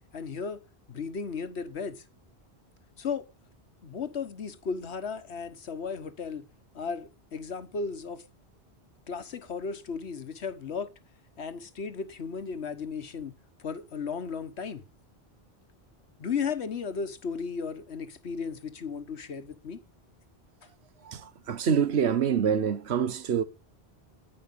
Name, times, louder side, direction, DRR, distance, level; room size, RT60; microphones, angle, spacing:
voice 1, 0.1-0.6 0.9-2.0 3.0-3.3 3.8-6.4 6.7-8.2 9.1-10.9 11.4-13.3 13.6-14.8 16.2-19.8, left 5 dB, 85° left, 1.5 m, -35 dB
voice 2, 21.0-23.4, right 7 dB, 80° right, 1.3 m, -26 dB
10.0 x 9.8 x 8.5 m
omnidirectional pair, 1.1 m